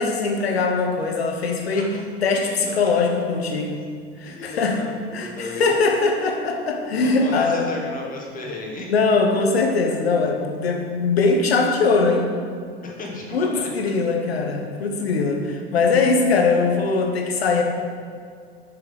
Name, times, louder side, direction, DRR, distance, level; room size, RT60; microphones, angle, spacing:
voice 1, 0.0-1.9 2.2-3.8 4.2-4.8 5.1-7.7 8.9-12.3 13.3-17.6, left 4 dB, 70° left, 3 dB, 1.3 m, -21 dB
voice 2, 2.7-3.0 4.3-5.7 6.9-8.9 12.8-13.9, left 2 dB, 25° left, -2 dB, 1.9 m, -35 dB
7.1 x 6.9 x 5.3 m, 2.2 s
figure-of-eight pair, 85°, 32 cm